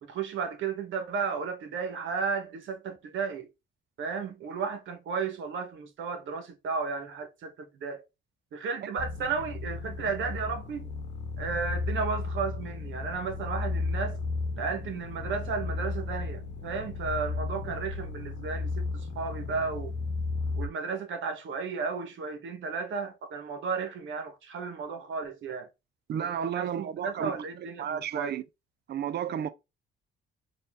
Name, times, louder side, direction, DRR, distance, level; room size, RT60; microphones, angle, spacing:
voice 1, 0.0-3.5 4.0-8.0 8.5-10.9 11.4-14.2 14.5-19.9 20.6-25.7 26.2-28.3, right 5 dB, 75° right, 1.2 m, -34 dB
sound 1, 9.0-20.7, left 3 dB, 60° left, 0.9 m, -34 dB
voice 2, 26.1-28.4 28.9-29.5, right 8 dB, 55° right, 0.5 m, -33 dB
4.2 x 2.6 x 3.5 m
cardioid pair, 90°, 20 cm